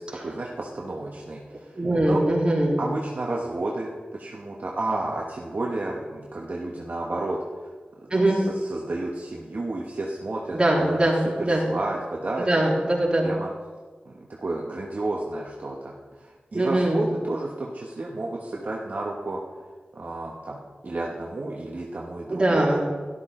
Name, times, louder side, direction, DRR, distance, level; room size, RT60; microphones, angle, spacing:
voice 1, 0.0-1.7 2.0-2.2 2.8-7.4 8.1-11.1 11.6-12.5 13.2-13.5 14.0-19.4 19.9-22.8, right 2 dB, 55° right, -2 dB, 1.3 m, -31 dB
voice 2, 1.7-2.8 8.1-8.4 10.5-11.6 12.4-13.3 16.5-17.0 22.3-22.8, right 1 dB, 30° right, -4 dB, 3.5 m, -22 dB
12.5 x 12.0 x 3.8 m, 1.4 s
wide cardioid pair, 70°, 3 cm